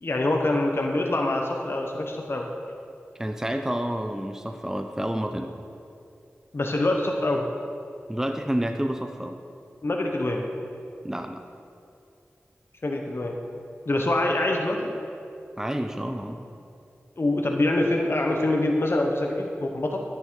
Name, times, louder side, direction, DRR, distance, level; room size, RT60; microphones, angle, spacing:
voice 1, 0.0-2.5 6.5-7.5 9.8-10.5 12.8-13.4 13.9-14.9 17.2-20.0, left 2 dB, 55° left, 1 dB, 1.1 m, -25 dB
voice 2, 3.2-5.5 8.1-9.4 11.0-11.4 15.6-16.5, right 1 dB, 10° right, 5 dB, 0.7 m, -29 dB
11.0 x 8.9 x 4.7 m, 2.6 s
cardioid pair, 40°, 5 cm